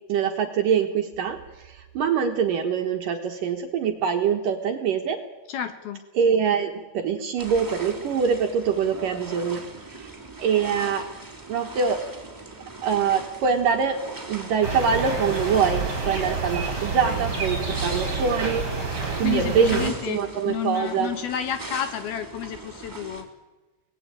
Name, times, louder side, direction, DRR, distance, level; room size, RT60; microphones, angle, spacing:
voice 1, 0.1-5.2 6.1-9.6 9.9-10.1 10.4-11.1 11.5-12.0 12.8-18.6 19.2-21.1, right 6 dB, 60° right, 4 dB, 2.5 m, -24 dB
voice 2, 5.5-6.0 19.2-20.2 20.5-23.3, left 10 dB, 65° left, 10 dB, 2.8 m, -30 dB
sound 1, 7.4-23.2, right 2 dB, 5° right, 2.6 m, -40 dB
sound 2, 14.6-19.9, right 3 dB, 20° right, 5.0 m, -28 dB
25.5 x 19.0 x 8.9 m, 1.1 s
omnidirectional pair, 5.3 m